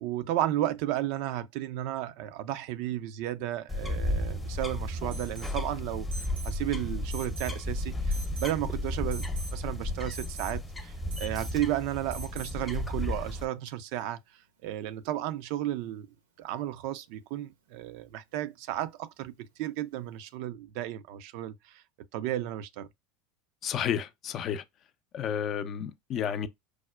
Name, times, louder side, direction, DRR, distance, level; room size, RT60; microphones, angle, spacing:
voice 1, 0.0-6.1 6.4-9.2 9.5-16.1 16.4-21.8 22.1-22.9, right 13 dB, 65° right, 0.4 m, -33 dB
sound 1, 3.7-13.5, left 1 dB, 10° left, 0.7 m, -33 dB
Alarm, 5.1-5.6 6.1-6.6 7.1-7.6 8.1-8.6 9.1-9.6 10.1-10.6 11.1-11.6 12.1-12.6, right 3 dB, 85° right, 0.9 m, -43 dB
voice 2, 23.6-24.6 25.1-26.5, left 9 dB, 45° left, 0.5 m, -31 dB
4.8 x 2.1 x 2.2 m
hypercardioid pair, 85°, 0 cm